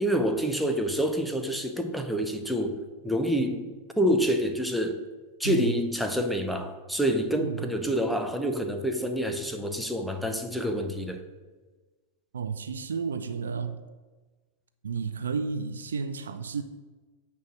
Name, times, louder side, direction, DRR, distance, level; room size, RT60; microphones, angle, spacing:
voice 1, 0.0-2.8 3.0-3.6 4.0-5.0 5.4-11.2, equal, ahead, 5 dB, 0.8 m, -27 dB
voice 2, 12.3-13.8 14.8-16.6, right 5 dB, 70° right, 9 dB, 0.4 m, -32 dB
8.8 x 3.4 x 6.3 m, 1.3 s
figure-of-eight pair, 90°, 0 cm